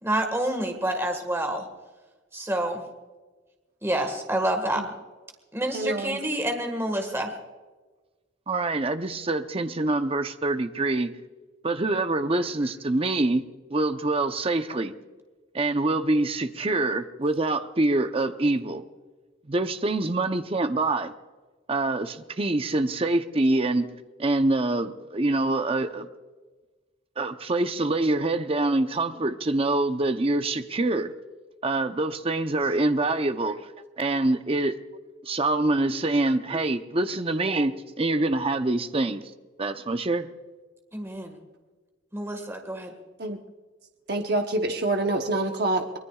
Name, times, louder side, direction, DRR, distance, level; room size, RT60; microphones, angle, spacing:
voice 1, 0.0-1.7 2.3-2.8 3.8-4.8 5.5-7.3 40.9-41.4 42.1-42.9, right 1 dB, 15° right, 4 dB, 1.7 m, -28 dB
voice 2, 5.7-6.2 43.2-43.4 44.1-46.0, right 2 dB, 55° right, 3 dB, 1.0 m, -26 dB
voice 3, 8.5-11.1 11.6-13.4 13.7-14.9 15.5-18.8 19.5-21.1 21.7-23.9 24.2-26.1 27.2-31.1 31.6-33.6 34.0-34.7 35.2-39.2 39.6-40.3, right 2 dB, 30° right, 8 dB, 0.8 m, -25 dB
24.0 x 20.5 x 2.4 m, 1.3 s
head